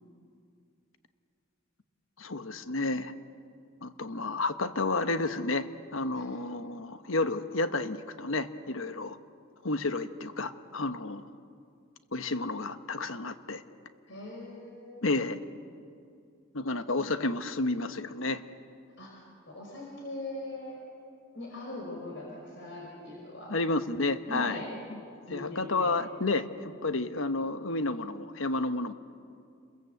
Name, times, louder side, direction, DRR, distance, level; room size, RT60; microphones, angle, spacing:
voice 1, 2.2-3.1 3.8-9.2 9.6-11.2 12.1-13.6 15.0-15.4 16.5-18.4 23.5-24.6 24.9-25.0 25.3-28.9, left 2 dB, 80° left, 10 dB, 1.3 m, -31 dB
voice 2, 14.1-15.1 19.0-19.1 19.5-20.8 21.3-23.5 24.3-24.7 25.3-25.9, left 2 dB, 65° left, -2 dB, 5.2 m, -40 dB
29.5 x 21.5 x 8.1 m, 2.4 s
head